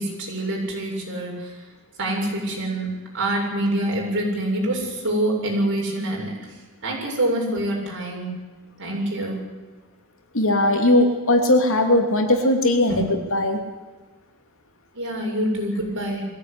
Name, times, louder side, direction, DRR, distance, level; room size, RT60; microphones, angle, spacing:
voice 1, 0.0-1.6 2.0-2.9 3.1-6.3 6.8-8.3 8.8-9.4 12.9-13.1 14.9-16.3, right 1 dB, 55° right, -1 dB, 7.4 m, -25 dB
voice 2, 10.3-13.0 13.3-13.6, left 1 dB, 65° left, 4 dB, 3.1 m, -19 dB
22.0 x 16.0 x 9.8 m, 1.3 s
head